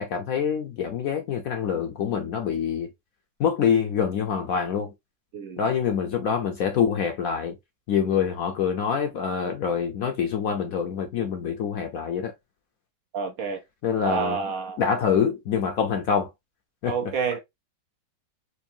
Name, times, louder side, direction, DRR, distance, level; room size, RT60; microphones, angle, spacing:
voice 1, 0.0-2.9 3.4-4.9 5.6-7.6 7.9-12.3 13.8-14.4 14.8-16.3 16.8-16.9, left 7 dB, 65° left, 0.9 m, -25 dB
voice 2, 5.3-5.6 13.1-13.6 14.0-14.8 16.8-17.4, right 6 dB, 65° right, 1.0 m, -28 dB
4.3 x 2.6 x 2.6 m
omnidirectional pair, 1.9 m